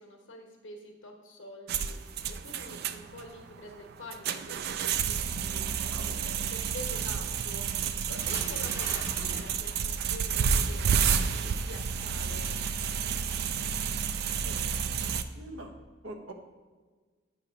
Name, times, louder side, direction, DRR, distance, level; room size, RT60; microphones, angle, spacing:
voice 1, 0.0-12.6, left 1 dB, 70° left, 2 dB, 1.1 m, -47 dB
sound 1, 1.7-15.2, right 7 dB, 55° right, 0.3 m, -30 dB
Bathtub (filling or washing) / Splash splatter, 8.1-10.6 10.9-11.2, right 1 dB, 15° right, 0.6 m, -42 dB
voice 2, 14.4-15.7 16.0-16.3, right 1 dB, 85° right, 3 dB, 0.9 m, -45 dB
8.4 x 2.9 x 6.1 m, 1.4 s
head